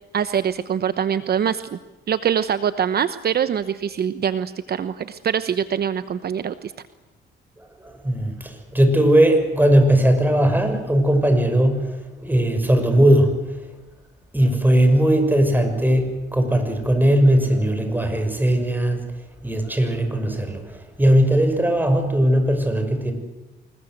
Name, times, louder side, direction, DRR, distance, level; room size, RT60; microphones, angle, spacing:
voice 1, 0.1-1.8 2.1-6.7, right 8 dB, 55° right, 12 dB, 1.0 m, -24 dB
voice 2, 7.8-13.4 14.3-19.0 19.4-23.1, right 1 dB, 10° right, 7 dB, 6.4 m, -18 dB
26.0 x 21.0 x 7.9 m, 1.1 s
cardioid pair, 90°, 20 cm